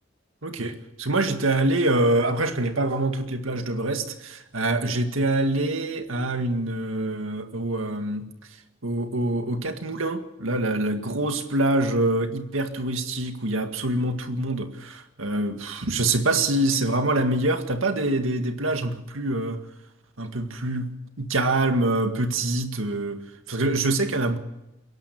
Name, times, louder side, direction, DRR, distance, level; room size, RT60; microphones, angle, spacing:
voice 1, 0.4-8.3 8.8-19.6 20.2-23.2 23.5-24.4, right 2 dB, 85° right, 2.0 m, -25 dB
29.5 x 11.5 x 8.7 m
head